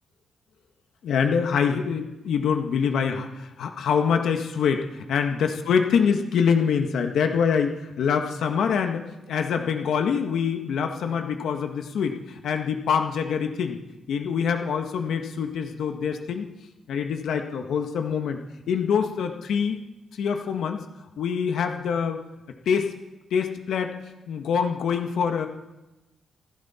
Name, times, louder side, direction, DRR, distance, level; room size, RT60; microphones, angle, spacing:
voice 1, 1.0-4.8 5.1-13.8 14.1-16.4 16.9-18.4 18.7-19.8 20.2-20.8 21.2-22.2 22.6-22.9 23.3-23.9 24.3-25.5, left 6 dB, 75° left, 5 dB, 1.6 m, -25 dB
26.5 x 12.0 x 4.4 m, 1.0 s
wide cardioid pair, 165°, 0 cm